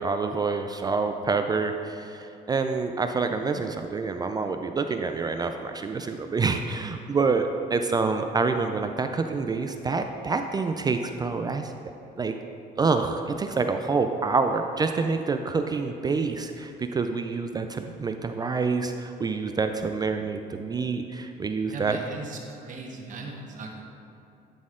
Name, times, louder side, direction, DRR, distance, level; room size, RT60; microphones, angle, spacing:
voice 1, 0.0-11.7 12.2-12.4 12.8-22.0, right 4 dB, 25° right, 6 dB, 0.3 m, -27 dB
voice 2, 21.7-23.8, right 3 dB, 50° right, 1 dB, 1.2 m, -38 dB
11.0 x 4.2 x 3.7 m, 2.8 s
cardioid pair, 110°, 17 cm